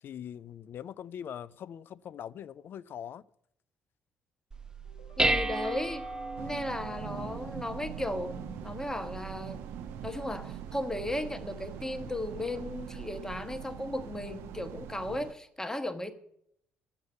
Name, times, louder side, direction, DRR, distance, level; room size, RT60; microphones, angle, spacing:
voice 1, 0.0-3.2, left 9 dB, 45° left, 0.5 m, -42 dB
Dishes pots and pans, 4.5-13.7, right 2 dB, 15° right, 0.9 m, -37 dB
sound 1, 4.8-7.9, right 1 dB, 70° left, 1.8 m, -56 dB
voice 2, 5.2-6.1 6.4-9.6 10.0-16.1, left 1 dB, 10° left, 1.3 m, -35 dB
sound 2, 6.4-15.3, right 9 dB, 60° right, 0.6 m, -44 dB
10.5 x 7.9 x 9.2 m
figure-of-eight pair, 45°, 5 cm